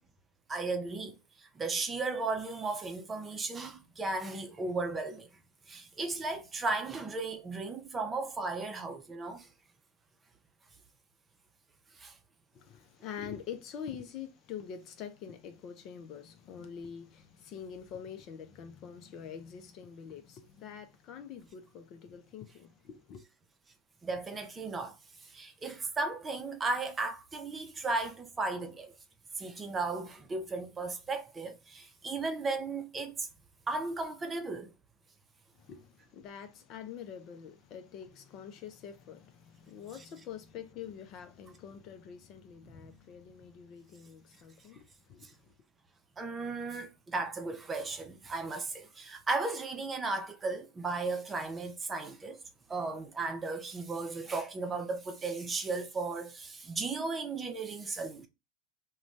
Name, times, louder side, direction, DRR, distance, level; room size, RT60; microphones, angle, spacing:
voice 1, 0.5-5.3 5.7-9.5 11.9-12.2 24.0-28.9 29.4-33.3 33.7-34.7 42.8-42.9 45.2-45.3 46.2-52.4 52.7-58.3, right 3 dB, 20° right, 0.7 m, -35 dB
voice 2, 12.5-23.2 35.5-45.5, left 8 dB, 50° left, 0.6 m, -45 dB
2.5 x 2.3 x 3.2 m
hypercardioid pair, 95°, 0 cm